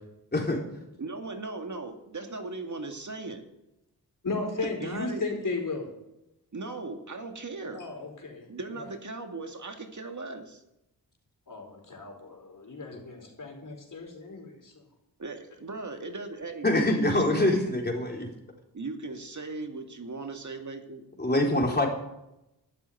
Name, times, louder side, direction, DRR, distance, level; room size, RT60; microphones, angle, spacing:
voice 1, 1.0-3.4 4.6-5.2 6.5-7.8 8.5-10.6 15.2-17.8 18.7-21.0, right 3 dB, 45° right, 5 dB, 2.0 m, -38 dB
voice 2, 4.2-5.9 7.7-8.4 11.5-14.7, left 3 dB, 50° left, 1 dB, 4.8 m, -35 dB
voice 3, 16.6-18.3 21.2-21.9, left 1 dB, 25° left, 0 dB, 3.9 m, -24 dB
12.5 x 7.1 x 10.0 m, 0.89 s
cardioid pair, 60°, 39 cm